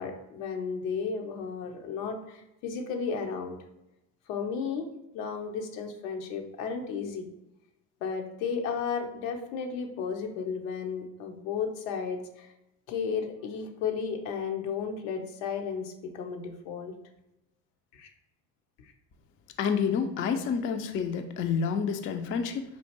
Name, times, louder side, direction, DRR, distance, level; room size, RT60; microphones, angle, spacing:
voice 1, 0.0-3.6 4.3-4.9 5.1-7.3 8.0-12.5 12.9-16.9 17.9-18.1 18.8-18.9, left 6 dB, 75° left, 4 dB, 0.7 m, -33 dB
voice 2, 19.6-22.6, left 6 dB, 30° left, 6 dB, 0.3 m, -28 dB
4.4 x 2.5 x 2.9 m, 0.90 s
hypercardioid pair, 60°, 47 cm